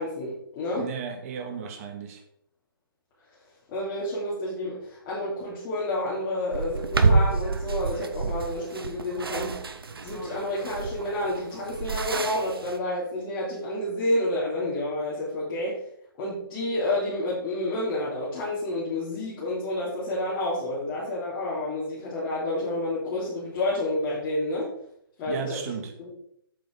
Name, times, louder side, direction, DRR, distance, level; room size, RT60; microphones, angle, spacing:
voice 1, 0.0-0.9 3.7-9.6 10.0-15.8 16.2-24.7 25.2-25.6 26.0-26.2, left 1 dB, 25° left, -9 dB, 3.2 m, -29 dB
voice 2, 0.8-2.2 25.3-25.9, right 7 dB, 40° right, 5 dB, 1.8 m, -35 dB
sound 1, 6.5-12.8, right 4 dB, 80° right, 1.0 m, -28 dB
7.9 x 7.7 x 3.9 m, 0.71 s
figure-of-eight pair, 140°, 12 cm